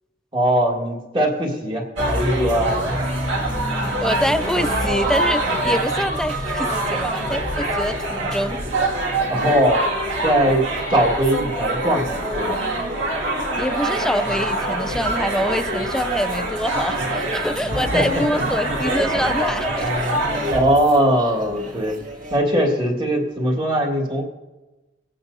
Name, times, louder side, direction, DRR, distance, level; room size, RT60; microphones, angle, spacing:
voice 1, 0.3-2.7 9.3-9.8 10.2-10.6 10.9-12.6 17.9-18.0 18.3-18.4 20.5-22.0 22.3-24.2, right 1 dB, 25° right, -1 dB, 1.8 m, -20 dB
sound 1, 2.0-20.6, right 1 dB, 85° right, 2.1 m, -24 dB
voice 2, 4.0-8.6 13.6-20.2, equal, 5° left, 11 dB, 0.3 m, -25 dB
sound 2, 18.5-23.6, right 1 dB, 45° right, 1.8 m, -41 dB
25.0 x 8.7 x 2.7 m, 1.1 s
head